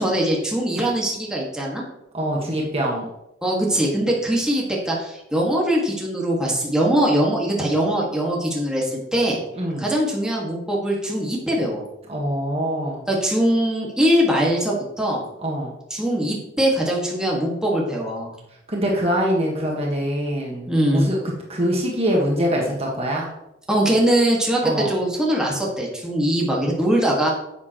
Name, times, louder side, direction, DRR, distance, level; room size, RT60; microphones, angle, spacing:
voice 1, 0.0-1.8 3.4-9.4 9.8-11.8 13.1-15.2 15.9-18.3 20.7-21.1 23.7-27.3, right 1 dB, 5° right, -4 dB, 1.8 m, -21 dB
voice 2, 2.1-3.1 9.5-9.9 12.1-13.0 15.4-15.7 18.7-21.2 21.5-23.3 24.6-24.9, equal, 30° right, -2 dB, 1.6 m, -24 dB
11.0 x 7.7 x 3.1 m, 0.88 s
head